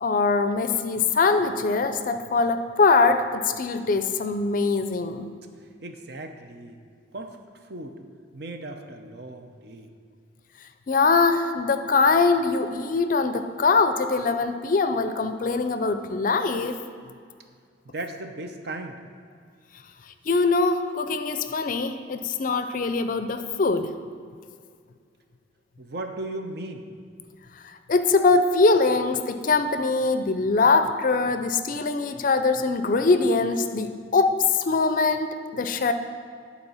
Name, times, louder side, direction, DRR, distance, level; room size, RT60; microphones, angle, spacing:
voice 1, 0.0-5.3 10.9-16.8 20.3-24.0 27.9-35.9, left 4 dB, 45° left, 9 dB, 0.4 m, -22 dB
voice 2, 5.8-6.8 7.1-7.4 7.6-8.0 8.3-9.9 17.8-19.0 25.8-26.9, right 2 dB, 60° right, 5 dB, 0.7 m, -36 dB
10.5 x 4.1 x 5.5 m, 2.2 s
head